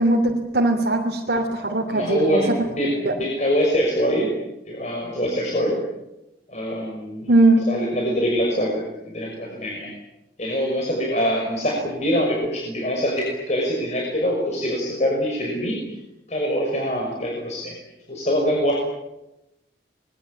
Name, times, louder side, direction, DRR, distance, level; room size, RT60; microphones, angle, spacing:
voice 1, 0.0-2.4 3.0-3.1 7.3-7.6, right 2 dB, 65° right, 0 dB, 3.0 m, -19 dB
voice 2, 1.9-4.3 4.7-5.8 6.5-7.3 7.7-9.9 10.4-15.8 16.3-17.7 18.1-18.7, equal, 40° left, -1 dB, 5.9 m, -24 dB
26.5 x 21.5 x 8.5 m, 0.92 s
head